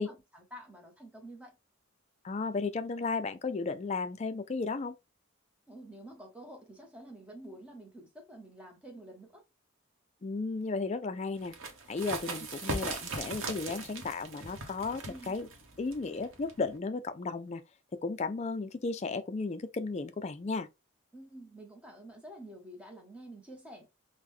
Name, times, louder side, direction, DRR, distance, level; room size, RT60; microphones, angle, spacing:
voice 1, 0.0-1.6 5.7-9.4 12.4-12.5 15.0-15.4 21.1-23.9, right 1 dB, 5° right, 0.8 m, -49 dB
voice 2, 2.2-5.0 10.2-11.5 11.9-15.5 15.8-17.6 18.0-20.7, left 4 dB, 30° left, 0.3 m, -34 dB
sound 1, 11.4-16.8, right 2 dB, 70° right, 0.8 m, -39 dB
3.6 x 2.1 x 3.0 m
head